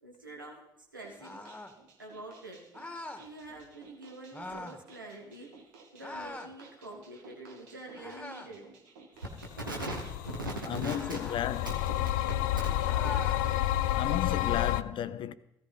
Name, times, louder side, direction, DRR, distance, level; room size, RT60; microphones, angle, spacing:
voice 1, 0.0-0.6 0.9-1.5 2.0-2.6 3.2-5.5 5.9-8.7 9.6-11.2 12.3-12.4 13.0-13.1 13.5-13.6, right 1 dB, 85° right, 2.0 m, -42 dB
sound 1, 1.0-14.7, right 3 dB, 70° right, 2.5 m, -56 dB
sound 2, 1.2-1.8 2.7-3.3 4.3-4.8 6.0-6.5 7.9-8.6 10.9-11.5 12.8-13.4, left 2 dB, 10° left, 2.0 m, -42 dB
sound 3, 9.6-14.8, left 13 dB, 70° left, 0.5 m, -30 dB
voice 2, 10.7-11.7 14.0-15.3, left 10 dB, 50° left, 0.9 m, -33 dB
17.0 x 14.0 x 5.4 m
figure-of-eight pair, 45°, 11 cm